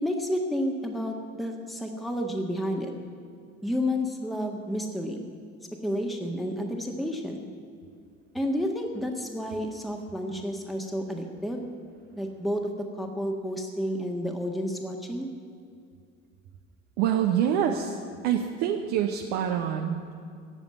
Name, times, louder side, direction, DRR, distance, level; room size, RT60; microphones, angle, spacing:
voice 1, 0.0-2.9 3.6-5.3 5.8-7.5 8.3-11.7 12.2-12.6 13.0-15.3, equal, ahead, 2 dB, 1.6 m, -30 dB
voice 2, 17.0-18.0 18.2-20.1, right 9 dB, 60° right, 2 dB, 1.1 m, -26 dB
17.5 x 7.1 x 9.4 m, 2.3 s
figure-of-eight pair, 65°, 40 cm